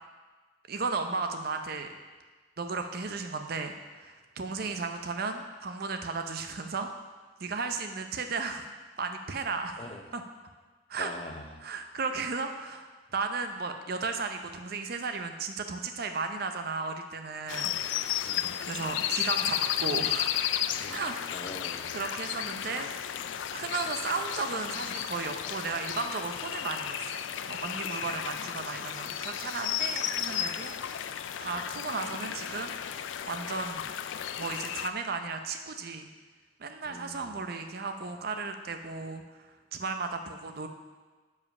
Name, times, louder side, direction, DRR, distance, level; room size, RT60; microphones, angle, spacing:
voice 1, 0.7-1.9 2.6-6.9 7.4-8.6 9.0-9.8 10.1-10.2 10.9-11.1 11.6-18.2 18.6-20.4 20.9-21.5 21.9-23.2 23.5-30.7 31.0-32.8 33.3-33.9 34.4-36.1 36.6-39.2 39.7-40.7, right 4 dB, 55° right, 6 dB, 0.6 m, -35 dB
voice 2, 11.0-11.6 18.2-18.5 20.8-21.0 21.3-21.9 28.0-28.3 36.8-37.4, left 2 dB, 30° left, 4 dB, 0.6 m, -44 dB
sound 1, 17.5-34.9, left 10 dB, 80° left, 0.3 m, -33 dB
7.3 x 4.8 x 5.3 m, 1.4 s
head